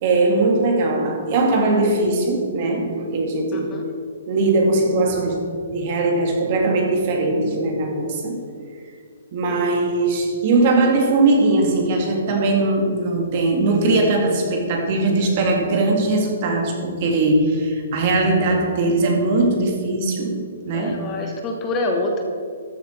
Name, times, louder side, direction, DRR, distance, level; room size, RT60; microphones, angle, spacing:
voice 1, 0.0-3.8 4.3-8.4 9.3-21.1, right 2 dB, 45° right, 2 dB, 2.1 m, -20 dB
voice 2, 3.5-3.8 18.5-18.6 20.8-22.2, left 2 dB, 25° left, 3 dB, 1.3 m, -26 dB
13.0 x 7.4 x 4.5 m, 2.2 s
figure-of-eight pair, 125°, 0 cm